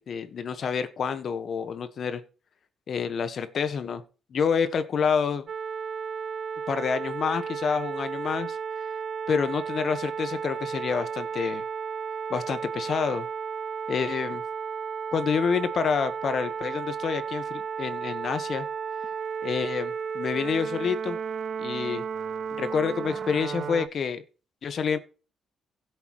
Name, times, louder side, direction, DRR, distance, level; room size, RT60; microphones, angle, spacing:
voice 1, 0.0-2.2 2.9-4.0 4.3-5.5 6.7-8.6 9.3-11.6 12.3-13.3 13.9-14.4 15.1-18.6 19.4-21.2 21.6-22.0 22.6-24.2 24.6-25.0, left 6 dB, 55° left, 11 dB, 1.4 m, -28 dB
sound 1, 5.5-23.9, right 6 dB, 55° right, 0.5 m, -33 dB
16.0 x 8.2 x 3.2 m, 0.35 s
cardioid pair, 90°, 0 cm